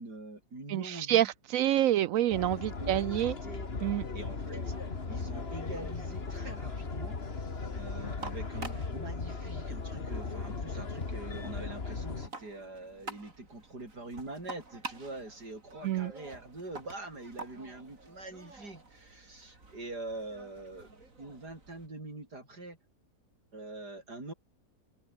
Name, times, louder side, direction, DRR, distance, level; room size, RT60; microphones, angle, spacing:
voice 1, 0.0-1.3 2.8-3.7 3.9-4.7 5.1-7.2 7.7-22.8 23.5-24.3, right 2 dB, 85° right, 7.0 m, -44 dB
voice 2, 0.7-3.3 3.8-4.0 15.8-16.1, right 12 dB, 70° right, 0.8 m, -27 dB
sound 1, 2.3-12.3, left 4 dB, 40° left, 2.2 m, -37 dB
sound 2, 2.6-21.9, right 3 dB, 55° right, 4.2 m, -50 dB
open air
omnidirectional pair, 1.7 m